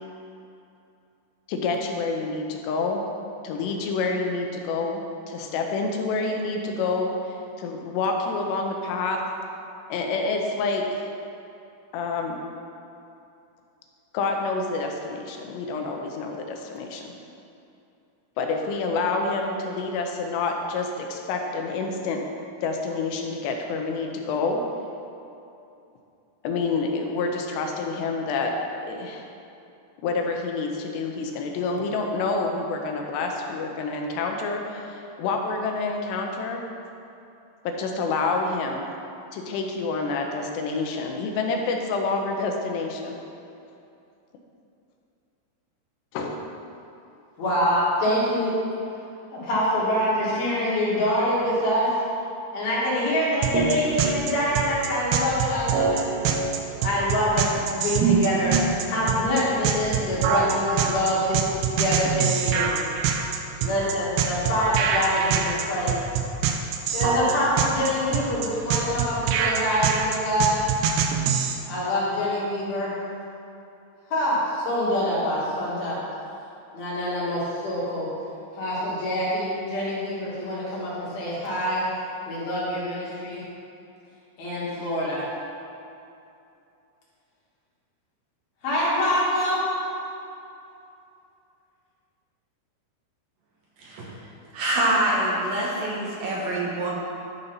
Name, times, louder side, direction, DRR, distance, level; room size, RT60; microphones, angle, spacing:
voice 1, 1.5-3.0 3.4-5.0 5.3-9.2 9.9-11.1 11.9-12.4 14.1-17.1 18.4-22.2 22.6-24.6 26.4-28.5 28.9-29.3 30.0-36.6 37.6-38.8 39.3-43.2 46.1-46.4, left 3 dB, 85° left, 2 dB, 2.9 m, -28 dB
voice 2, 47.4-48.6 49.3-51.9 52.5-56.0 56.8-62.8 63.6-66.0 66.9-70.6 71.7-72.9 74.1-76.0 76.7-78.1 78.5-81.8 82.3-83.4 84.4-85.3 88.6-89.6, equal, 65° left, -7 dB, 3.6 m, -25 dB
sound 1, 53.4-71.5, right 7 dB, 85° right, 2.2 m, -24 dB
voice 3, 94.5-96.9, right 1 dB, 70° right, -5 dB, 2.8 m, -25 dB
11.5 x 4.0 x 5.5 m, 2.7 s
omnidirectional pair, 4.8 m